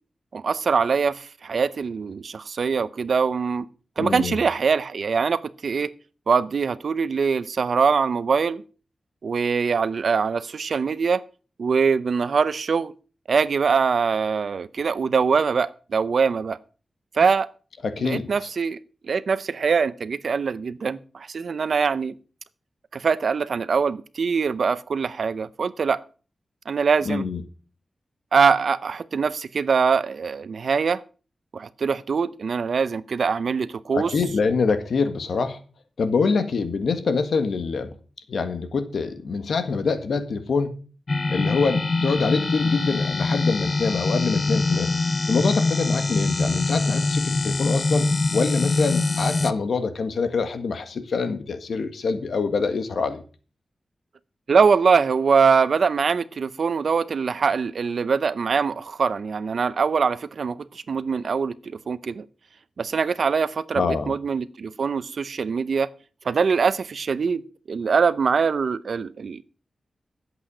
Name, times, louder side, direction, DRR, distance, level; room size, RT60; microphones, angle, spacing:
voice 1, 0.3-3.7 4.0-5.9 6.3-8.6 9.2-11.2 11.6-12.9 13.3-16.6 17.1-17.5 18.0-18.8 19.0-22.2 22.9-26.0 26.7-27.3 28.3-31.0 31.5-34.1 54.5-62.3 62.8-65.9 66.2-67.4 67.7-69.4, right 5 dB, 75° right, 0.7 m, -23 dB
voice 2, 4.0-4.4 17.8-18.5 27.0-27.4 33.9-35.6 36.0-37.9 38.3-40.7 41.3-44.9 45.3-53.2 63.8-64.1, left 4 dB, 80° left, 1.6 m, -25 dB
sound 1, 41.1-49.5, left 3 dB, 50° left, 0.8 m, -23 dB
11.5 x 8.1 x 6.3 m
cardioid pair, 65°, 0 cm